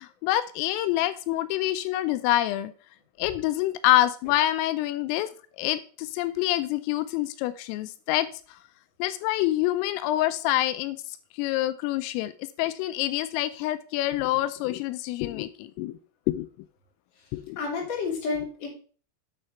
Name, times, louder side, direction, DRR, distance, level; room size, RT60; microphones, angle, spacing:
voice 1, 0.0-2.7 3.2-5.3 5.6-8.3 9.0-11.0 11.4-12.3 12.6-16.0 16.3-16.5 17.3-17.6, left 15 dB, 90° left, 12 dB, 3.2 m, -26 dB
voice 2, 17.6-18.7, left 4 dB, 40° left, -2 dB, 3.4 m, -30 dB
8.7 x 6.4 x 4.5 m, 0.39 s
omnidirectional pair, 5.8 m